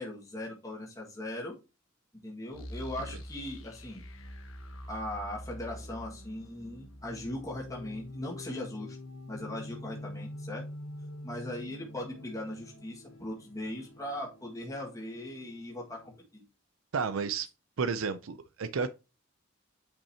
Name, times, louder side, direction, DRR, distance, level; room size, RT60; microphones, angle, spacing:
voice 1, 0.0-1.5 2.2-4.0 4.9-9.0 9.3-10.7 11.2-16.4, left 1 dB, 15° left, 1.8 m, -39 dB
sound 1, 2.5-9.3, equal, 80° left, 1.3 m, -46 dB
sound 2, 7.0-16.2, left 1 dB, 65° left, 0.9 m, -46 dB
voice 2, 16.9-17.5 17.8-18.9, right 5 dB, 85° right, 0.5 m, -31 dB
8.7 x 5.5 x 2.8 m
head